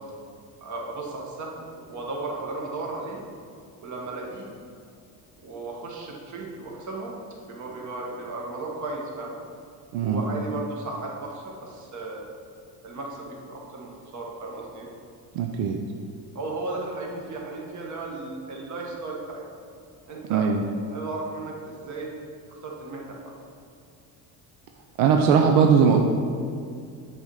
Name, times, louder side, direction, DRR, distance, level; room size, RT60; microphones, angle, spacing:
voice 1, 0.6-1.6 1.9-3.2 3.8-4.5 5.4-7.2 7.4-9.4 10.0-12.2 12.8-14.9 16.3-19.4 20.1-20.5 20.9-22.1 22.5-23.3, right 2 dB, 45° right, -1 dB, 1.5 m, -35 dB
voice 2, 15.4-15.8 20.3-20.6 25.0-26.0, right 6 dB, 85° right, 3 dB, 0.6 m, -19 dB
7.0 x 4.1 x 4.8 m, 2.3 s
cardioid pair, 115°, 39 cm